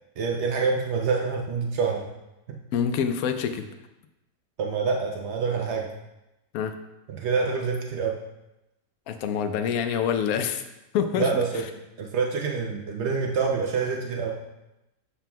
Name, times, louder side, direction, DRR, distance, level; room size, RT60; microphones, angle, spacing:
voice 1, 0.2-2.1 2.5-2.6 4.6-5.9 7.1-8.2 11.2-11.6 12.0-14.4, right 5 dB, 80° right, 1 dB, 0.6 m, -26 dB
voice 2, 2.7-3.7 6.5-6.8 9.1-10.6 10.9-11.3, left 8 dB, 70° left, 7 dB, 0.9 m, -26 dB
7.3 x 6.8 x 2.2 m, 0.95 s
omnidirectional pair, 1.9 m